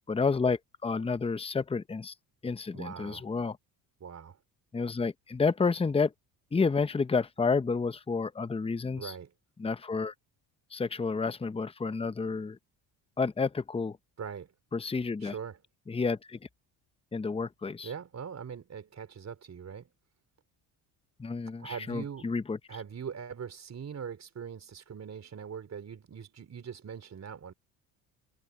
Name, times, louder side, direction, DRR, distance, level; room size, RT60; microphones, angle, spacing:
voice 1, 0.1-2.1 2.4-3.6 4.7-6.1 6.5-9.1 9.6-10.1 10.7-12.6 13.2-14.0 14.7-15.3 15.9-16.4 17.1-17.9 21.2-22.6, left 4 dB, 15° left, 0.8 m, -30 dB
voice 2, 2.7-3.2 4.0-4.4 8.9-9.3 14.2-14.5 15.2-15.6 17.8-19.9 21.6-22.3 22.7-27.5, right 7 dB, 40° right, 4.5 m, -41 dB
cardioid pair, 90°, 39 cm